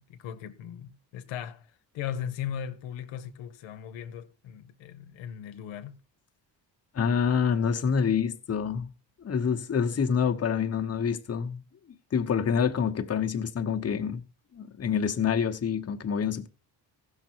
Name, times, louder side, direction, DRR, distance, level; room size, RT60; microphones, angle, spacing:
voice 1, 0.0-1.6 1.9-6.0, left 9 dB, 90° left, 0.9 m, -38 dB
voice 2, 6.9-8.9 9.2-11.6 12.1-14.2 14.5-16.5, left 7 dB, 35° left, 1.0 m, -27 dB
15.0 x 6.6 x 4.5 m
cardioid pair, 90°, 44 cm